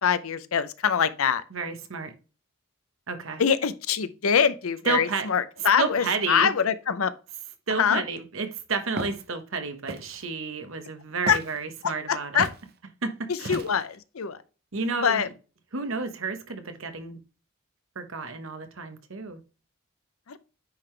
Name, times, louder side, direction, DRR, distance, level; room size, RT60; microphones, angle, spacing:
voice 1, 0.0-1.4 3.4-7.1 7.8-8.0 11.3-11.4 11.8-12.5 13.3-14.4 15.0-15.3 20.3-20.4, left 7 dB, 80° left, 0.6 m, -24 dB
voice 2, 1.5-2.1 3.1-3.4 4.8-5.3 5.8-6.5 7.7-12.4 13.0-13.6 14.7-15.3 15.7-17.2 17.9-19.4, right 4 dB, 70° right, 1.2 m, -31 dB
Walk footsteps, 9.0-9.2 9.9-10.2 11.3-11.6 12.4-12.6 13.4-14.0, right 2 dB, 50° right, 0.7 m, -34 dB
9.5 x 3.8 x 3.3 m
head